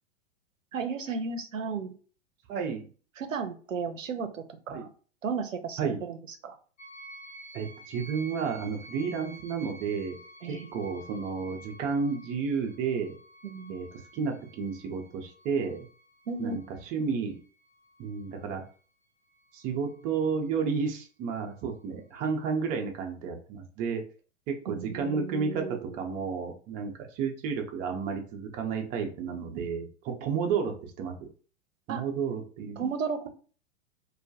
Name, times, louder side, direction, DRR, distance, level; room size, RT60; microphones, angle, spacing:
voice 1, 0.7-1.9 3.2-4.9 5.2-6.2 6.4-6.6 10.4-10.7 13.4-13.8 16.3-16.6 24.7-26.0 29.3-29.7 31.9-32.0 32.8-33.3, right 5 dB, 90° right, 7 dB, 0.5 m, -34 dB
voice 2, 2.5-2.9 4.7-4.9 5.8-6.0 7.5-10.2 10.5-13.2 13.7-13.9 14.1-15.9 16.4-16.6 16.9-17.4 18.0-18.6 19.5-24.0 24.5-31.3 31.9-32.8, right 5 dB, 25° right, 3 dB, 0.4 m, -31 dB
sound 1, 6.8-18.7 19.3-20.1, right 1 dB, 25° left, 0.6 m, -51 dB
2.2 x 2.2 x 2.6 m, 0.39 s
figure-of-eight pair, 95°, 38 cm